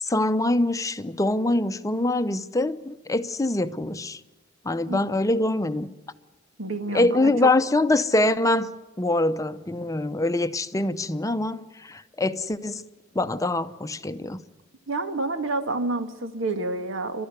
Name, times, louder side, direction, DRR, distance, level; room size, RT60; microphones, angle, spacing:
voice 1, 0.0-4.2 4.6-5.9 6.9-8.7 9.0-12.8 13.1-14.4, left 2 dB, 15° left, 0.7 m, -24 dB
voice 2, 6.6-7.5 14.9-17.3, right 2 dB, 80° right, 1.9 m, -28 dB
28.5 x 12.5 x 9.6 m
head